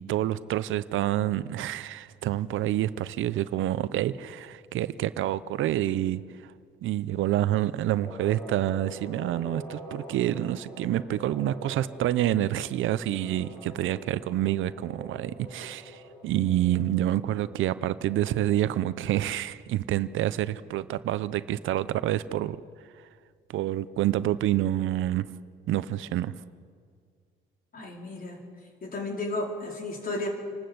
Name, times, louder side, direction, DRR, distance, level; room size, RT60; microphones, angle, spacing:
voice 1, 0.0-6.5 6.8-22.6 23.5-25.3 25.7-26.3, right 13 dB, 80° right, 15 dB, 0.7 m, -28 dB
sound 1, 8.0-19.1, equal, 20° left, 4.9 m, -45 dB
voice 2, 27.7-28.4 28.8-30.3, left 2 dB, 45° left, 0 dB, 4.7 m, -33 dB
27.5 x 13.0 x 7.9 m, 2.1 s
cardioid pair, 90°, 20 cm